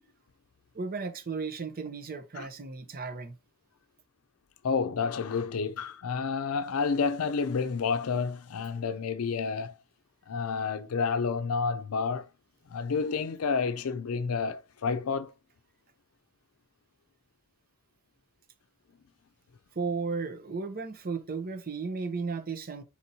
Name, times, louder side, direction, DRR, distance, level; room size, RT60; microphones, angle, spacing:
voice 1, 0.7-3.4 19.7-22.8, right 4 dB, 45° right, 0.6 m, -34 dB
voice 2, 4.6-9.8 10.3-12.3 12.7-15.3, left 5 dB, 85° left, 0.5 m, -30 dB
4.4 x 4.2 x 2.7 m
head